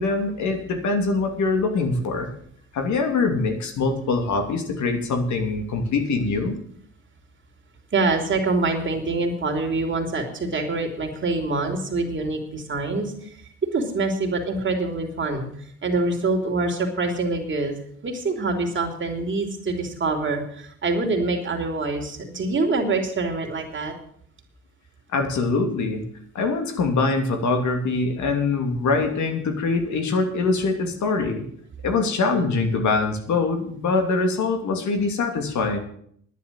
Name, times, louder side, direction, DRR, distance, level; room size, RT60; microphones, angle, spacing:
voice 1, 0.0-2.3 2.7-6.6 25.1-26.0 26.3-31.4 31.8-35.8, left 3 dB, 70° left, 5 dB, 2.7 m, -23 dB
voice 2, 7.9-13.4 13.7-15.5 15.8-17.7 18.0-23.9, right 3 dB, 40° right, 3 dB, 3.2 m, -25 dB
10.5 x 10.0 x 7.5 m, 0.64 s
cardioid pair, 90°, 30 cm